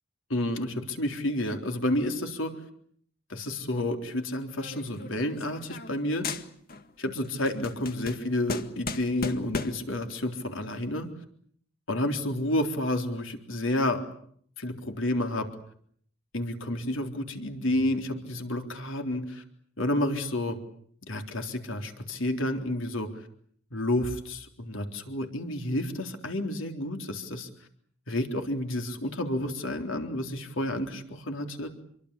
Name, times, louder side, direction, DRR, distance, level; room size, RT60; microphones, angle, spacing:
voice 1, 0.3-2.5 3.3-6.3 7.0-11.1 11.9-14.0 14.6-15.5 16.3-19.4 19.8-20.6 21.1-23.1 23.7-27.5 28.1-31.7, left 1 dB, 80° left, 5 dB, 3.8 m, -30 dB
sound 1, 4.6-6.0 6.2-6.9 7.2-9.9, left 4 dB, 50° left, 1.9 m, -36 dB
27.5 x 24.0 x 8.4 m, 0.63 s
head